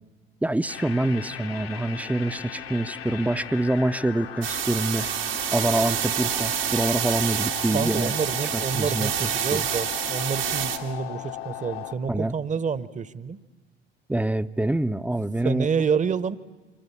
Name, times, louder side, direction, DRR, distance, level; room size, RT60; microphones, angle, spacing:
voice 1, 0.4-5.1 5.5-8.1 8.5-9.6 12.1-12.3 14.1-15.7, right 1 dB, 5° right, 14 dB, 0.7 m, -26 dB
sound 1, 0.7-11.9, left 9 dB, 80° left, 2.0 m, -37 dB
sound 2, 4.4-10.8, right 10 dB, 75° right, 2.0 m, -28 dB
voice 2, 7.7-13.4 15.4-16.4, right 6 dB, 25° right, 18 dB, 1.0 m, -28 dB
26.0 x 23.0 x 7.0 m, 1.2 s
figure-of-eight pair, 55°, 30 cm